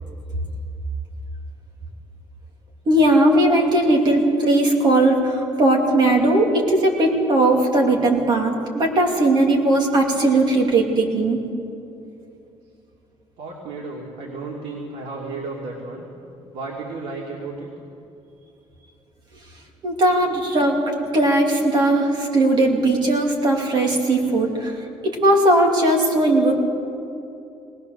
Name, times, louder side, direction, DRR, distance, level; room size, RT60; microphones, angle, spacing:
voice 1, 2.9-11.4 19.8-26.5, right 1 dB, 40° right, 1 dB, 2.8 m, -18 dB
voice 2, 13.4-16.1 16.5-17.7, right 3 dB, 85° right, -2 dB, 2.9 m, -33 dB
19.5 x 19.5 x 6.8 m, 2.7 s
cardioid pair, 170°, 11 cm